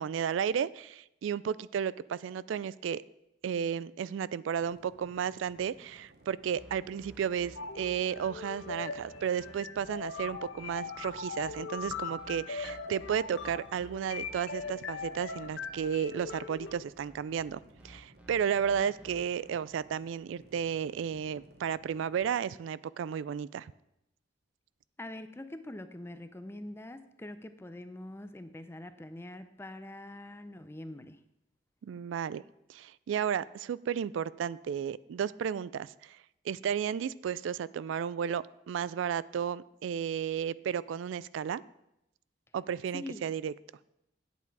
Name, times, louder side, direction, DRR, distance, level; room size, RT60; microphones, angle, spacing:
voice 1, 0.0-3.0 3.4-17.6 17.8-23.7 31.8-32.4 32.7-36.2 36.4-41.6 42.5-43.5, right 8 dB, 80° right, 19 dB, 0.3 m, -33 dB
sound 1, 4.6-22.3, right 1 dB, 55° right, 1.1 m, -59 dB
sound 2, 6.6-19.2, equal, 5° right, 1.1 m, -55 dB
sound 3, 7.5-16.7, left 5 dB, 80° left, 0.9 m, -40 dB
voice 2, 25.0-31.2 42.9-43.3, left 1 dB, 15° left, 11 dB, 0.5 m, -44 dB
9.4 x 8.2 x 4.7 m, 0.84 s
head